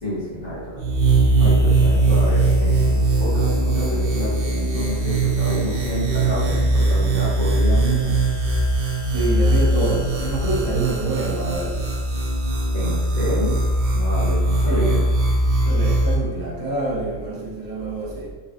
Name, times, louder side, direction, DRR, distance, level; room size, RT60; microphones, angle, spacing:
voice 1, 0.0-0.8 1.4-8.2 12.7-13.6 13.9-15.0, equal, 50° left, 1.4 m, -28 dB
sound 1, 0.8-16.1, right 2 dB, 60° right, 1.0 m, -20 dB
voice 2, 9.1-11.9 14.6-15.0 15.7-18.3, right 2 dB, 25° right, 0.4 m, -26 dB
3.9 x 2.4 x 3.5 m
omnidirectional pair, 1.4 m